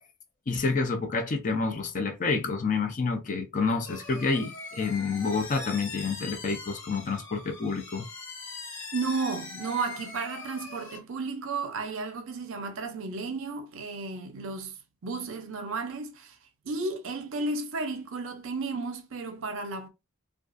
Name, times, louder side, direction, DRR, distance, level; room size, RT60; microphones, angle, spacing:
voice 1, 0.5-8.1, left 4 dB, 35° left, 0.5 m, -28 dB
sound 1, 3.9-11.0, left 3 dB, 60° left, 0.9 m, -42 dB
voice 2, 8.9-14.8 15.0-16.4 16.6-19.9, right 3 dB, 65° right, 0.5 m, -33 dB
2.4 x 2.3 x 2.4 m
head